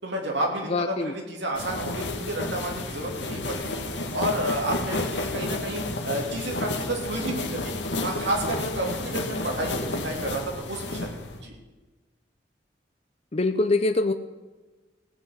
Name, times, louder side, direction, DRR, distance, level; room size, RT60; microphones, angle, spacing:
voice 1, 0.0-3.8 4.1-7.7 8.0-11.5, right 1 dB, 75° right, 0 dB, 3.2 m, -31 dB
voice 2, 0.7-1.1 13.3-14.1, left 2 dB, 35° left, 8 dB, 0.6 m, -23 dB
sound 1, 1.5-11.4, left 2 dB, 80° left, 1.5 m, -31 dB
17.0 x 6.2 x 8.8 m, 1.2 s
head